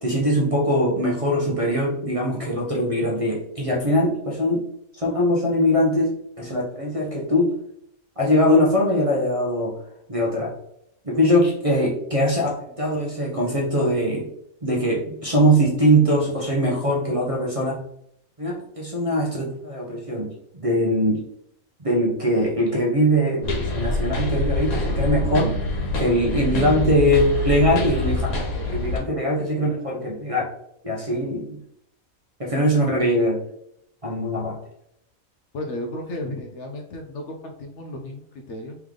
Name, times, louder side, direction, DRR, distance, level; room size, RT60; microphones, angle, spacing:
voice 1, 0.0-4.7 4.9-7.6 8.2-9.7 10.1-10.5 11.0-14.3 14.6-17.8 18.4-21.2 21.8-25.5 25.9-30.4 30.8-31.6 32.4-33.4 34.0-34.6, equal, 30° right, -3 dB, 0.7 m, -22 dB
sound 1, 23.4-29.0, left 2 dB, 85° left, 1.5 m, -25 dB
voice 2, 35.5-38.8, left 1 dB, 65° left, 2 dB, 0.8 m, -34 dB
3.5 x 3.2 x 3.6 m, 0.73 s
omnidirectional pair, 1.5 m